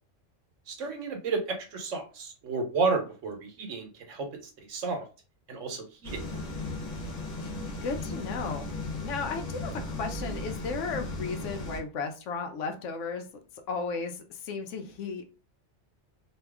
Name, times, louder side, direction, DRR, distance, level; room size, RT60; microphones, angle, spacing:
voice 1, 0.7-4.3 4.7-5.1 5.5-6.4, right 4 dB, 85° right, 4 dB, 1.1 m, -32 dB
sound 1, 6.0-11.8, left 2 dB, 50° left, 0.8 m, -36 dB
voice 2, 7.7-8.7 9.0-13.3 13.7-15.3, left 4 dB, 85° left, 6 dB, 0.9 m, -34 dB
2.7 x 2.3 x 3.4 m, 0.34 s
omnidirectional pair, 1.3 m